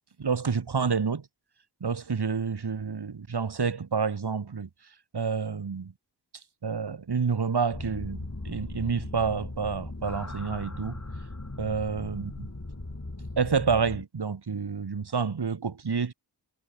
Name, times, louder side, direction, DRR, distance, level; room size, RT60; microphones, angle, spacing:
voice 1, 0.2-1.2 1.8-4.7 5.1-5.9 6.6-11.0 11.6-12.5 13.4-16.1, right 5 dB, 65° right, 1.4 m, -29 dB
sound 1, 7.7-14.0, left 2 dB, 40° left, 7.4 m, -38 dB
wide cardioid pair, 50°, 43 cm